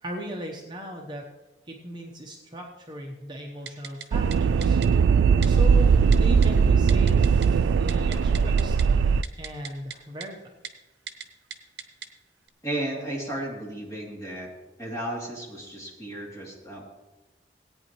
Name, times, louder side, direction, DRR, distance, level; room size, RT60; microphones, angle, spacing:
voice 1, 0.0-1.2 1.7-4.8 5.4-8.8 9.4-10.4, equal, 25° right, 0 dB, 0.9 m, -38 dB
Typing, 3.7-4.1 4.3-4.4 4.6-4.9 5.4-5.5 6.1-6.5 6.9-7.5 7.8-8.8 9.2-10.0 10.2-10.3 10.6-10.7 11.1-11.2 11.5-12.1 12.5-12.6, right 8 dB, 65° right, 0.9 m, -38 dB
sound 1, 4.1-9.2, right 6 dB, 90° right, 0.3 m, -20 dB
voice 2, 12.6-14.5 14.8-16.9, right 1 dB, 20° left, -4 dB, 2.7 m, -34 dB
17.5 x 8.9 x 3.1 m, 1.1 s
head